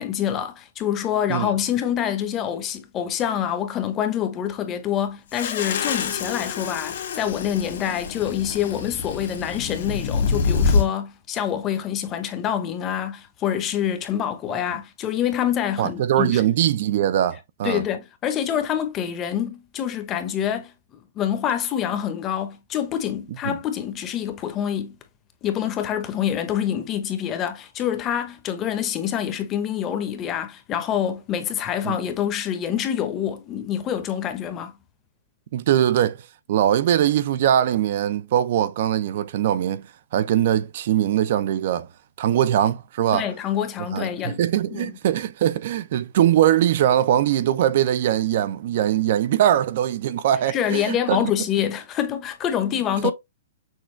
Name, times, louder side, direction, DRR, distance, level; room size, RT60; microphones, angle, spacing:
voice 1, 0.0-16.4 17.6-20.7 21.2-25.0 25.4-34.7 43.1-44.4 44.7-44.9 50.5-53.1, left 9 dB, 20° left, 0.8 m, -26 dB
sound 1, 5.3-10.9, left 5 dB, 60° left, 1.7 m, -26 dB
voice 2, 15.8-17.8 23.5-23.6 31.8-32.0 35.5-36.2 36.5-39.8 40.1-41.9 42.2-43.3 43.9-51.3 53.0-53.1, right 11 dB, 50° right, 0.5 m, -21 dB
6.4 x 2.3 x 3.2 m
hypercardioid pair, 150°, 0 cm